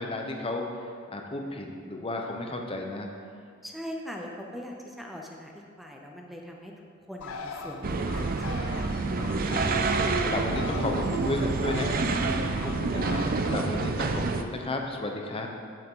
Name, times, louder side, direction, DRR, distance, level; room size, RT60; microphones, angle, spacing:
voice 1, 0.0-3.1 9.2-15.5, left 2 dB, 25° left, 2 dB, 0.8 m, -33 dB
voice 2, 3.6-6.7 7.1-8.5, equal, ahead, 0 dB, 0.7 m, -41 dB
Bird, 7.2-14.6, left 4 dB, 85° left, 0.6 m, -41 dB
sound 1, 7.8-14.4, right 3 dB, 45° right, 0.5 m, -28 dB
8.4 x 7.6 x 3.7 m, 2.2 s
head